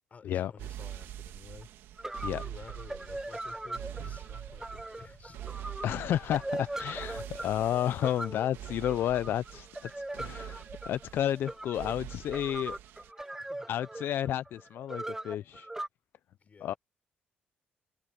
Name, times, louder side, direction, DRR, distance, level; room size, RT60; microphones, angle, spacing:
voice 1, 0.1-1.7 2.3-5.4 13.2-13.7 16.4-16.8, left 5 dB, 40° left, 4.7 m, -52 dB
sound 1, 0.6-13.1, right 12 dB, 85° right, 1.5 m, -45 dB
sound 2, 1.6-1.7 2.0-15.9, right 2 dB, 10° right, 1.0 m, -40 dB
voice 2, 5.8-12.8 13.7-15.7 16.6-16.7, left 11 dB, 70° left, 0.5 m, -31 dB
cardioid pair, 75°, 4 cm